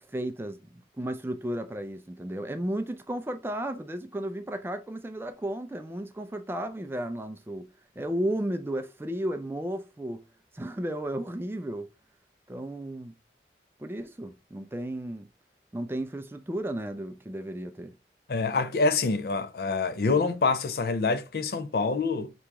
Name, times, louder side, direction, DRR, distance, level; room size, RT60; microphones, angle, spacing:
voice 1, 0.1-7.7 8.0-10.2 10.5-11.9 12.5-13.1 13.8-15.3 15.7-18.0, right 1 dB, 15° right, 0.3 m, -34 dB
voice 2, 18.3-22.3, left 4 dB, 55° left, 0.4 m, -26 dB
4.6 x 3.0 x 3.4 m
head